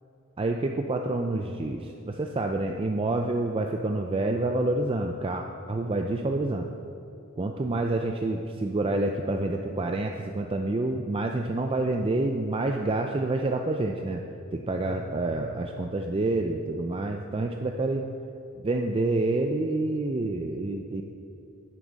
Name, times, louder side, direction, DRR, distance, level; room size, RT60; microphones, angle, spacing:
voice 1, 0.4-6.7 7.4-14.2 14.5-18.1 18.6-21.0, right 2 dB, 25° right, 3 dB, 0.4 m, -28 dB
11.0 x 9.4 x 4.0 m, 2.8 s
head